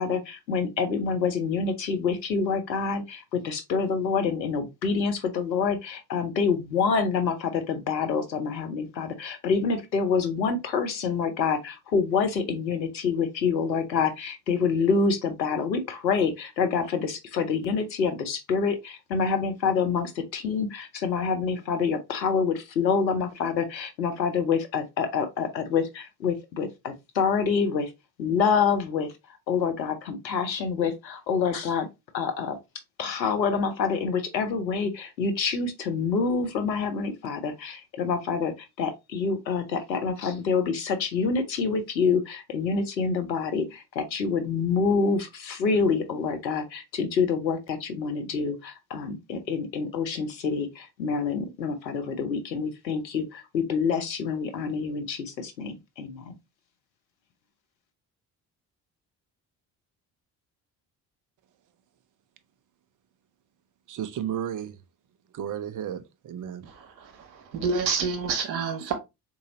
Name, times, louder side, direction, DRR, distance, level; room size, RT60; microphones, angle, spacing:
voice 1, 0.0-27.9 28.2-31.9 32.1-32.6 33.0-56.4, left 5 dB, 90° left, 0.6 m, -27 dB
voice 2, 63.9-64.8 65.3-66.6, right 10 dB, 40° right, 0.6 m, -33 dB
voice 3, 66.6-68.9, right 5 dB, 85° right, 0.7 m, -29 dB
3.8 x 2.7 x 2.6 m
figure-of-eight pair, 40°, 50 cm